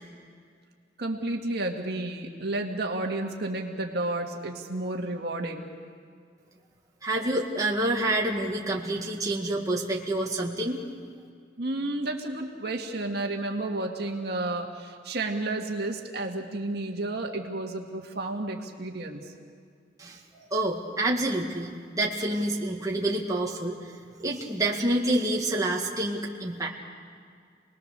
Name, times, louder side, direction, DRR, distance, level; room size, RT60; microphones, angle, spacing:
voice 1, 1.0-5.7 11.6-19.3, right 2 dB, 60° right, 2 dB, 1.9 m, -31 dB
voice 2, 7.0-10.8 20.0-23.8 24.2-26.7, right 1 dB, 20° right, -2 dB, 1.9 m, -28 dB
28.5 x 20.5 x 6.8 m, 2.2 s
head